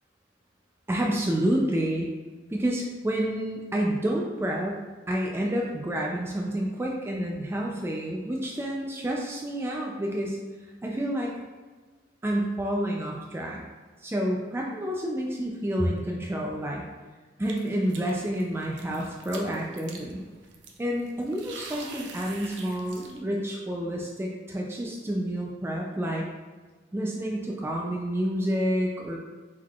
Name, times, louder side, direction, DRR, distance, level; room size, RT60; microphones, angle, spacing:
voice 1, 0.9-2.1 2.5-10.4 10.8-11.3 12.2-13.6 14.0-16.8 17.4-20.2 20.8-26.2 26.9-29.2, equal, 15° right, -1 dB, 0.3 m, -29 dB
sound 1, 17.5-23.2, right 4 dB, 75° right, 0.5 m, -45 dB
4.6 x 3.8 x 2.3 m, 1.4 s
head